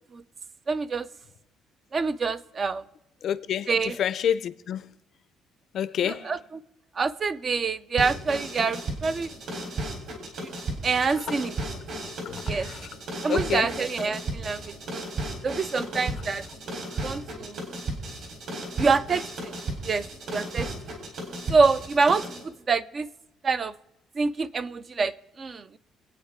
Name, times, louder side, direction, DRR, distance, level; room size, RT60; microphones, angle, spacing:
voice 1, 0.7-1.1 1.9-2.8 3.7-4.0 6.1-6.4 7.0-9.3 10.4-10.5 10.8-11.6 12.5-12.7 13.2-15.0 15.4-16.4 16.7-17.6 18.8-19.5 19.8-20.7 21.5-22.3 22.7-23.1 23.4-23.7 24.2-25.8, right 4 dB, 25° right, 0.4 m, -26 dB
voice 2, 3.2-3.7 4.0-4.9 5.7-6.3 11.3-11.4 12.2-12.9 13.3-13.7, left 9 dB, 45° left, 0.5 m, -28 dB
sound 1, 8.0-22.4, right 2 dB, 50° right, 3.6 m, -34 dB
26.5 x 8.8 x 3.6 m
cardioid pair, 165°, 0 cm